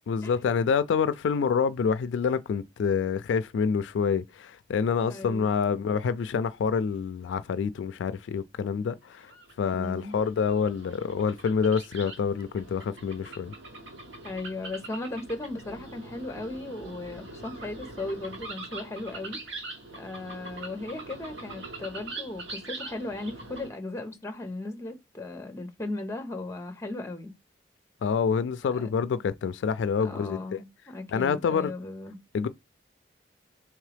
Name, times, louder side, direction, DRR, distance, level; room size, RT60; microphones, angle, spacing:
voice 1, 0.1-9.3 9.6-13.5 28.0-30.6 31.1-31.7 32.3-32.5, left 6 dB, 85° left, 0.3 m, -27 dB
voice 2, 5.1-5.6 9.7-10.2 14.2-19.6 20.0-27.3 28.7-28.9 30.0-32.2, left 2 dB, 15° left, 0.7 m, -37 dB
sound 1, 9.1-23.7, right 2 dB, 80° right, 1.2 m, -43 dB
3.6 x 3.1 x 3.3 m
head